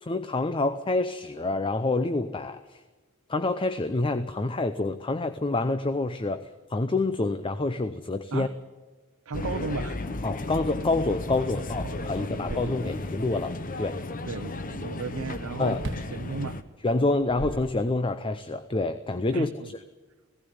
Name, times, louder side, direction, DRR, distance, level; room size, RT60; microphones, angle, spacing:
voice 1, 0.0-2.8 3.3-8.5 10.2-14.0 15.6-15.8 16.8-19.8, left 2 dB, 25° left, 11 dB, 0.6 m, -27 dB
sound 1, 9.3-16.6, left 2 dB, 40° left, 0.9 m, -34 dB
voice 2, 9.3-10.0 11.8-12.9 14.3-15.8 16.1-16.6 19.3-19.7, right 4 dB, 80° right, 7 dB, 0.7 m, -35 dB
sound 2, 15.7-16.2 17.0-18.2, right 1 dB, 60° right, 1.1 m, -39 dB
17.5 x 16.0 x 9.5 m, 1.3 s
head